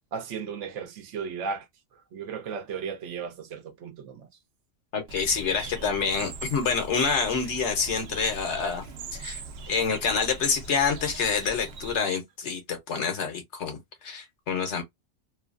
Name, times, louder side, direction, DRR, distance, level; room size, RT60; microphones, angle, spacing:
voice 1, 0.1-1.7 1.9-4.3, right 6 dB, 80° right, 1.0 m, -35 dB
voice 2, 4.9-8.8 9.1-9.4 9.7-14.8, left 5 dB, 75° left, 1.3 m, -27 dB
Bird, 5.1-12.0, right 3 dB, 65° right, 0.8 m, -41 dB
2.9 x 2.4 x 2.4 m
omnidirectional pair, 1.2 m